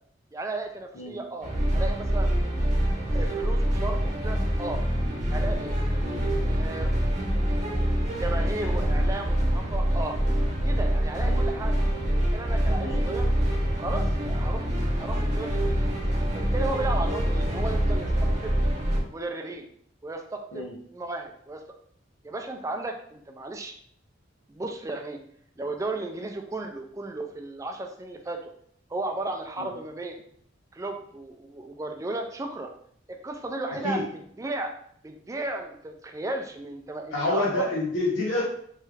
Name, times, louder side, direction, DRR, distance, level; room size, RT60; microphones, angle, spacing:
voice 1, 0.3-2.3 3.1-4.8 5.3-5.8 6.4-6.9 8.2-10.2 10.6-11.8 12.1-13.3 13.8-15.9 16.3-18.1 18.4-18.6 19.1-19.7 20.0-21.6 22.2-23.7 24.5-25.2 25.6-28.5 28.9-30.2 30.7-32.7 33.2-34.0 34.4-34.7 35.0-37.7, right 2 dB, 15° right, 3 dB, 0.3 m, -34 dB
sound 1, 1.4-19.0, equal, 40° right, 0.8 m, -25 dB
voice 2, 37.1-38.4, left 2 dB, 85° left, -5 dB, 0.8 m, -28 dB
3.1 x 2.3 x 3.2 m, 0.65 s
head